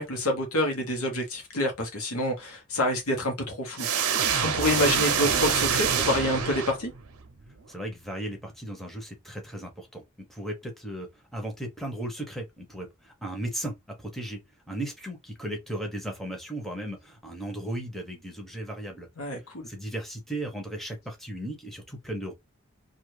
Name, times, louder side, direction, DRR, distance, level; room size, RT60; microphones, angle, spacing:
voice 1, 0.0-3.9 4.4-6.9 19.2-19.7, left 1 dB, 80° left, 0.9 m, -27 dB
sound 1, 3.8-7.1, right 7 dB, 85° right, 0.7 m, -26 dB
voice 2, 7.7-10.0 10.3-14.4 14.7-19.1 19.7-22.3, right 1 dB, ahead, 0.7 m, -36 dB
2.8 x 2.4 x 3.1 m
head